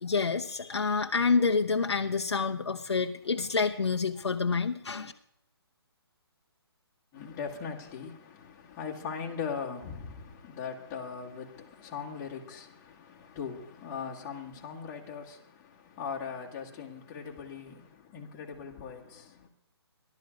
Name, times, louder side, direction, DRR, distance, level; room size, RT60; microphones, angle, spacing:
voice 1, 0.0-5.1, left 4 dB, 85° left, 0.9 m, -28 dB
voice 2, 7.1-19.5, left 6 dB, 20° left, 1.9 m, -40 dB
17.0 x 12.0 x 5.2 m
hypercardioid pair, 150°, 14 cm